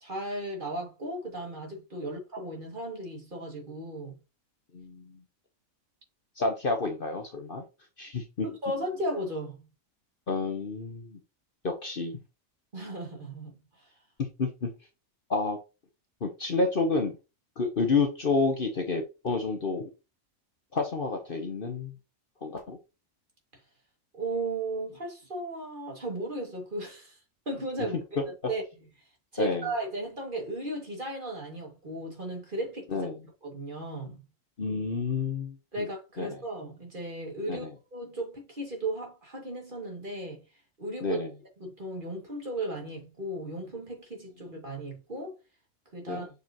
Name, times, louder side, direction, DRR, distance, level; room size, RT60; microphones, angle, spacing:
voice 1, 0.0-4.1 8.4-9.6 12.7-13.6 24.1-27.1 27.5-28.0 28.5-28.6 29.3-32.9 33.4-34.2 35.7-37.6 37.9-40.4 40.8-41.2 41.6-45.3 45.9-46.3, right 1 dB, 40° right, 2.6 m, -35 dB
voice 2, 4.7-5.0 6.4-7.6 8.0-8.5 10.3-11.2 11.6-12.1 14.4-14.7 15.3-15.6 16.2-17.1 17.6-19.9 20.7-21.9 22.4-22.8 28.4-28.5 29.4-29.7 32.9-33.2 34.6-35.9 36.2-36.4 37.5-37.7 41.0-41.3 46.1-46.2, left 3 dB, 45° left, 1.2 m, -29 dB
6.7 x 5.0 x 3.0 m
omnidirectional pair, 1.4 m